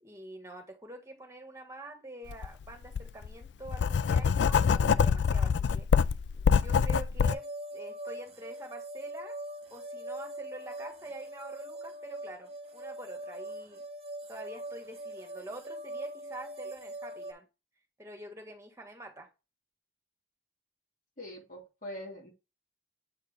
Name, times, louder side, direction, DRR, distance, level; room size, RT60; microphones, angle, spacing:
voice 1, 0.0-5.9 6.3-9.3 9.7-13.8 14.3-17.5 18.0-19.3, right 2 dB, 15° right, 1.5 m, -46 dB
Writing, 2.3-2.5 2.9-7.4, left 6 dB, 75° left, 0.3 m, -25 dB
sound 1, 7.2-17.3, right 1 dB, 35° right, 1.1 m, -42 dB
voice 2, 21.2-22.3, left 1 dB, 45° left, 2.6 m, -43 dB
8.0 x 4.6 x 3.4 m
head